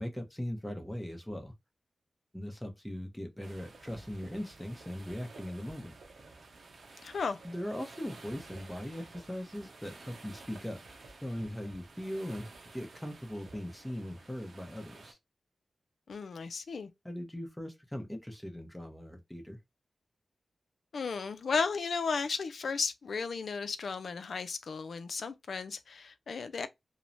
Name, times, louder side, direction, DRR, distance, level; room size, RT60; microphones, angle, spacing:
voice 1, 0.0-1.5 2.3-5.9 7.4-10.8 11.2-15.2 17.0-19.6, equal, 10° left, 0.7 m, -40 dB
sound 1, 3.4-15.1, right 3 dB, 75° right, 0.7 m, -52 dB
voice 2, 7.0-7.4 16.1-16.9 20.9-26.7, left 5 dB, 80° left, 0.3 m, -34 dB
2.9 x 2.0 x 2.5 m
cardioid pair, 65°, 0 cm